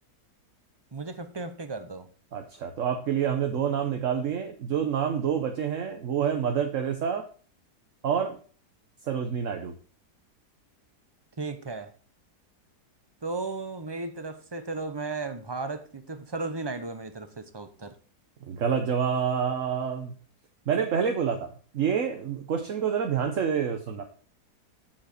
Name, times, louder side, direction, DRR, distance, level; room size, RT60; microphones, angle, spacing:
voice 1, 0.9-2.1 11.4-11.9 13.2-17.9, right 3 dB, 25° right, 9 dB, 0.5 m, -35 dB
voice 2, 2.3-7.3 8.0-8.4 9.1-9.7 18.5-20.1 20.7-24.0, right 7 dB, 55° right, 5 dB, 1.3 m, -27 dB
7.6 x 7.5 x 4.3 m, 0.41 s
omnidirectional pair, 1.7 m